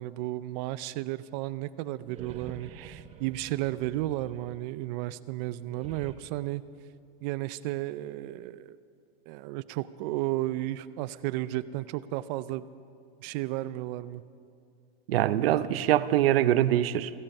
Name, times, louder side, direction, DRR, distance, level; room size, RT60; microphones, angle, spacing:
voice 1, 0.0-6.6 7.2-8.8 9.3-12.6 13.2-14.2, right 16 dB, 50° right, 0.6 m, -33 dB
sound 1, 2.0-5.0 5.6-6.2, right 6 dB, 20° right, 1.0 m, -48 dB
voice 2, 15.1-17.1, right 12 dB, 85° right, 0.7 m, -23 dB
16.0 x 15.5 x 5.4 m
supercardioid pair, 140°, 29 cm